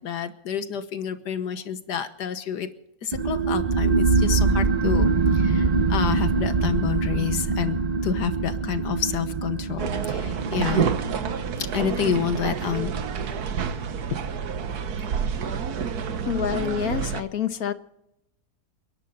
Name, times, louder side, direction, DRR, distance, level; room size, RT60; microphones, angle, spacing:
voice 1, 0.0-2.7 3.0-10.9 11.6-12.9 14.1-14.2, left 8 dB, 85° left, 10 dB, 1.7 m, -29 dB
sound 1, 3.1-14.2, right 4 dB, 40° right, 0.5 m, -24 dB
sound 2, 9.8-17.2, right 7 dB, 70° right, 1.6 m, -28 dB
voice 2, 16.2-17.7, left 8 dB, 65° left, 10 dB, 1.4 m, -27 dB
29.5 x 11.0 x 4.1 m, 0.82 s
omnidirectional pair, 1.8 m